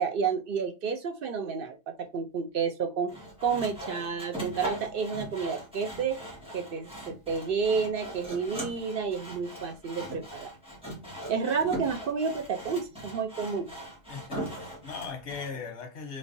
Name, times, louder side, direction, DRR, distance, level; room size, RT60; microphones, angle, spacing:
voice 1, 0.0-3.1 3.4-6.2 6.5-10.5 11.3-13.7, right 5 dB, 60° right, 0.7 m, -30 dB
Sawing, 3.1-15.5, right 1 dB, 5° right, 1.5 m, -40 dB
voice 2, 14.1-16.2, left 5 dB, 85° left, 1.3 m, -39 dB
3.2 x 3.2 x 2.6 m
omnidirectional pair, 1.1 m